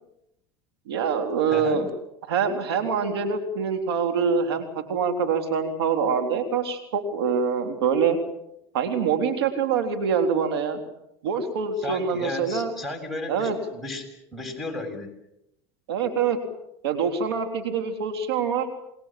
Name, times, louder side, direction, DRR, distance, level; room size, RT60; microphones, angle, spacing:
voice 1, 0.9-1.9 2.3-8.2 8.7-10.8 11.2-12.7 13.3-13.6 15.9-16.4 16.8-18.7, right 6 dB, 90° right, 6 dB, 3.6 m, -25 dB
voice 2, 1.5-1.8 11.8-15.1, left 2 dB, ahead, 3 dB, 7.3 m, -34 dB
28.0 x 20.5 x 7.6 m, 0.83 s
supercardioid pair, 105°, 13 cm